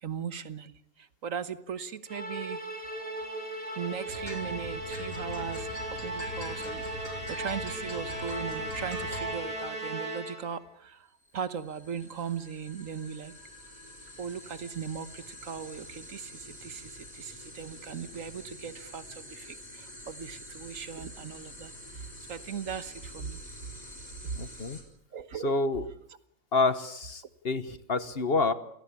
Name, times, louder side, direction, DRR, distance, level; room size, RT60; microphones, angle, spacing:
voice 1, 0.0-2.6 3.8-11.1 11.3-13.3 14.2-23.4 25.1-25.5, right 7 dB, 80° right, 14 dB, 1.6 m, -38 dB
Musical instrument, 2.1-10.6, right 1 dB, 30° right, 4.5 m, -37 dB
sound 1, 4.1-9.3, left 1 dB, 75° left, 5.4 m, -42 dB
sound 2, 11.2-24.8, left 1 dB, 30° left, 5.0 m, -48 dB
voice 2, 24.4-24.8 25.4-25.8 26.5-28.5, left 3 dB, 45° left, 14 dB, 1.5 m, -28 dB
28.5 x 18.0 x 8.6 m, 0.70 s
omnidirectional pair, 1.4 m